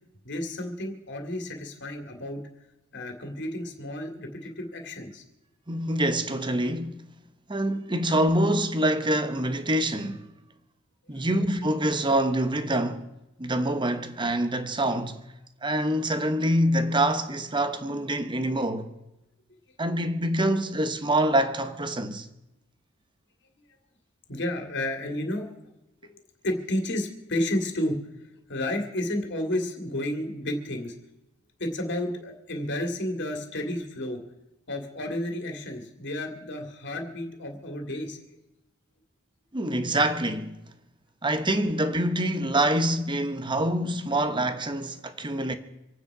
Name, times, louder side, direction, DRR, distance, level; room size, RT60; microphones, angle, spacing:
voice 1, 0.2-2.4 2.9-5.2 24.3-25.5 26.1-28.0 28.5-30.9 31.6-34.2 34.7-38.2, left 1 dB, 60° left, 2.5 m, -31 dB
voice 2, 5.7-7.1 7.5-10.3 11.1-13.0 13.4-15.2 15.6-18.9 19.8-22.3 39.5-40.6 41.2-45.5, right 1 dB, 25° right, 1.0 m, -25 dB
26.5 x 9.4 x 4.9 m
head